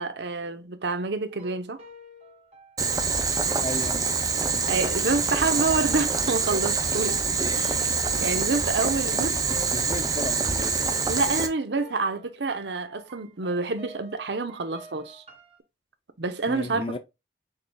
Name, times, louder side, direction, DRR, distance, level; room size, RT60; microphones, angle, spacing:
voice 1, 0.0-1.8 4.7-7.2 7.6-7.9 8.2-9.4 11.1-15.2 16.2-17.0, right 3 dB, 80° right, 0.8 m, -28 dB
sound 1, 1.3-11.5 11.8-15.6, left 1 dB, 35° right, 1.4 m, -47 dB
Boiling, 2.8-11.5, right 4 dB, 20° right, 0.6 m, -25 dB
voice 2, 3.6-4.0 9.2-9.3 9.7-10.7 16.5-17.0, left 2 dB, 30° left, 0.5 m, -34 dB
6.5 x 3.3 x 2.3 m
head